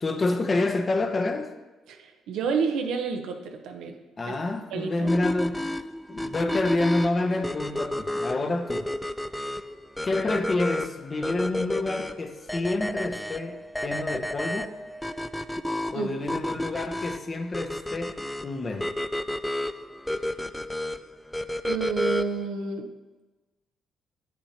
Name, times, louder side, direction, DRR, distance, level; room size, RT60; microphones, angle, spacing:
voice 1, 0.0-1.6 4.2-5.6 6.1-8.9 10.0-14.7 15.9-18.9, left 2 dB, 35° left, 6 dB, 0.8 m, -28 dB
voice 2, 1.9-4.0 4.3-4.4 4.7-5.1 9.3-9.5 15.9-16.2 21.7-22.9, right 5 dB, 85° right, 4 dB, 0.9 m, -30 dB
sound 1, 5.1-22.5, left 1 dB, 5° left, 0.4 m, -31 dB
8.6 x 6.2 x 4.3 m, 1.2 s
cardioid pair, 90°, 0 cm